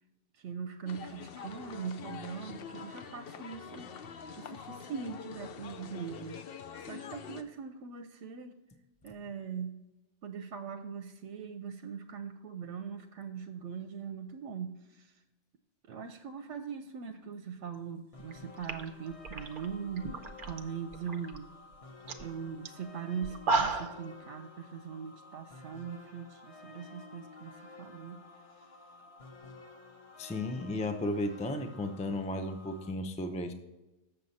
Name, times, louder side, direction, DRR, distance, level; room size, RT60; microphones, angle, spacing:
voice 1, 0.3-3.9 4.4-8.6 9.0-9.7 10.2-15.2 15.9-21.5 22.2-28.9, right 6 dB, 80° right, 8 dB, 0.9 m, -41 dB
sound 1, 0.9-7.4, left 7 dB, 60° left, 0.7 m, -45 dB
sound 2, 18.1-32.9, left 3 dB, 35° left, 0.8 m, -52 dB
sound 3, 18.2-18.3 18.6-20.6 20.9-21.4 21.7-21.8 22.1-22.3 22.7-22.8 23.2-24.0, right 3 dB, 55° right, 0.8 m, -33 dB
voice 2, 30.2-33.5, left 1 dB, 10° left, 8 dB, 0.3 m, -34 dB
7.8 x 6.7 x 4.1 m, 1.0 s
omnidirectional pair, 1.2 m